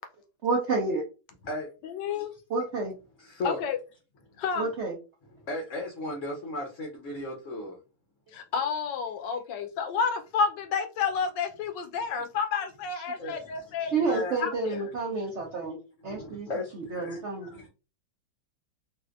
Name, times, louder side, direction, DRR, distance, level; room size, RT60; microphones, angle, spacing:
voice 1, 0.4-1.0 2.5-2.9 4.6-4.9 12.9-13.0 13.8-15.8 16.0-17.5, right 3 dB, 65° right, 0.7 m, -30 dB
voice 2, 1.8-2.3 3.4-3.8 4.4-4.7 8.3-14.1 14.4-14.8, left 6 dB, 75° left, 1.3 m, -30 dB
voice 3, 3.2-3.6 5.4-7.8 13.2-14.4 16.0-17.7, left 2 dB, 55° left, 0.9 m, -36 dB
4.1 x 2.5 x 2.4 m
omnidirectional pair, 2.1 m